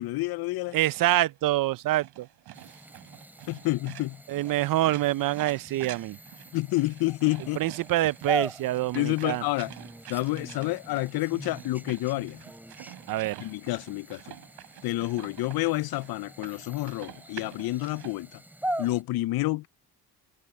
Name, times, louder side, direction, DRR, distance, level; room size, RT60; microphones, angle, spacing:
voice 1, 0.0-0.8 3.5-4.2 6.5-7.6 8.9-9.7 10.1-12.4 13.4-14.2 14.8-18.4 18.8-19.7, left 19 dB, 70° left, 0.5 m, -29 dB
voice 2, 0.7-2.3 4.3-6.2 7.6-9.4 13.1-13.5, right 15 dB, 60° right, 0.5 m, -26 dB
sound 1, 0.7-18.1, right 13 dB, 85° right, 4.7 m, -48 dB
sound 2, 2.5-19.0, right 1 dB, 5° right, 3.2 m, -41 dB
cardioid pair, 110°, 38 cm